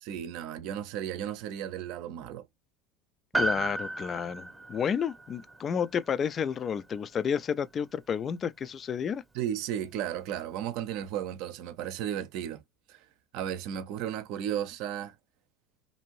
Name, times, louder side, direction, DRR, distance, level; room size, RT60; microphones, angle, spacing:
voice 1, 0.0-2.5 9.3-12.6 12.9-13.0 13.3-15.1, right 10 dB, 65° right, 0.6 m, -34 dB
Piano, 3.3-7.9 8.2-8.3, right 2 dB, 10° right, 0.7 m, -35 dB
voice 2, 3.4-9.2, left 7 dB, 35° left, 0.3 m, -31 dB
2.7 x 2.5 x 3.0 m
supercardioid pair, 95°, 0 cm